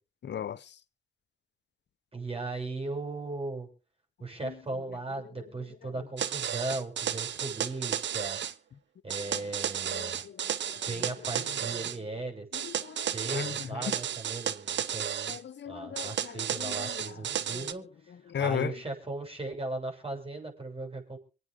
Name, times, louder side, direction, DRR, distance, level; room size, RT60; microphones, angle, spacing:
voice 1, 0.2-0.7 4.4-4.6 9.3-9.4 9.9-11.1 12.5-14.0 15.3-17.3 17.5-17.7 18.3-18.7, left 9 dB, 65° left, 0.8 m, -37 dB
voice 2, 2.1-3.7 4.2-8.4 9.0-10.2 10.8-12.5 13.1-15.4 15.6-17.9 18.4-21.2, right 2 dB, 30° right, 7.3 m, -37 dB
sound 1, 6.2-8.5 9.1-12.0 12.5-15.4 16.0-17.7, right 9 dB, 70° right, 0.8 m, -33 dB
24.5 x 9.2 x 3.8 m
supercardioid pair, 40°, 20 cm